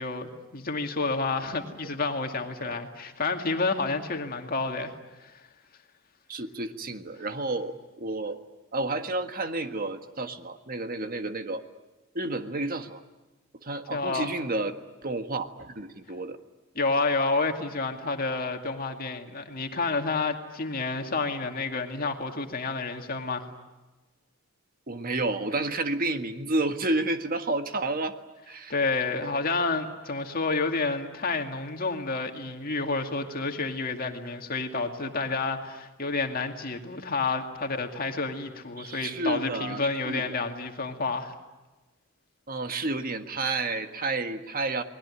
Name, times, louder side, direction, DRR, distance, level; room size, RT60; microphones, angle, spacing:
voice 1, 0.0-4.9 5.2-5.3 13.9-14.3 16.7-23.5 28.7-41.3, left 3 dB, 45° left, 4 dB, 2.3 m, -29 dB
voice 2, 6.3-8.4 8.7-11.6 12.1-13.0 13.6-14.8 15.0-16.4 24.9-28.1 28.5-28.7 38.8-40.4 42.5-44.8, right 2 dB, 45° right, 7 dB, 1.6 m, -30 dB
29.5 x 20.5 x 9.8 m, 1.1 s
head